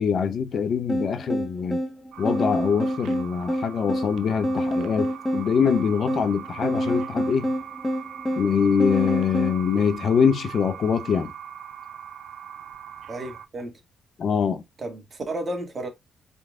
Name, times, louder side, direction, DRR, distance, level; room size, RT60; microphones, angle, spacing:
voice 1, 0.0-1.8 2.2-7.5 8.4-11.3 14.2-14.6, left 6 dB, 55° left, 0.7 m, -23 dB
sound 1, 0.9-9.6, equal, 10° left, 1.1 m, -27 dB
sound 2, 2.1-13.5, right 9 dB, 75° right, 0.5 m, -41 dB
voice 2, 13.1-13.7 14.8-15.9, right 1 dB, 35° right, 1.8 m, -32 dB
4.5 x 3.8 x 2.4 m
cardioid pair, 90°, 0 cm